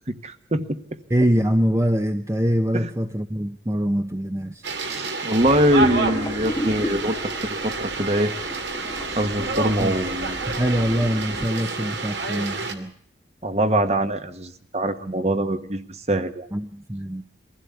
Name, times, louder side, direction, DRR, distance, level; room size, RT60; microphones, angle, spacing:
voice 1, 0.2-0.6 2.7-2.9 4.8-8.3 9.2-10.4 13.4-15.8 16.1-16.5, right 1 dB, 35° right, 1.3 m, -23 dB
voice 2, 1.1-4.7 9.8-10.0 10.5-12.9 16.5-17.2, equal, 15° right, 0.8 m, -24 dB
sound 1, 4.6-12.7, right 3 dB, 75° right, 2.6 m, -29 dB
sound 2, 5.4-11.5, equal, 15° left, 1.2 m, -34 dB
23.0 x 16.0 x 8.2 m
head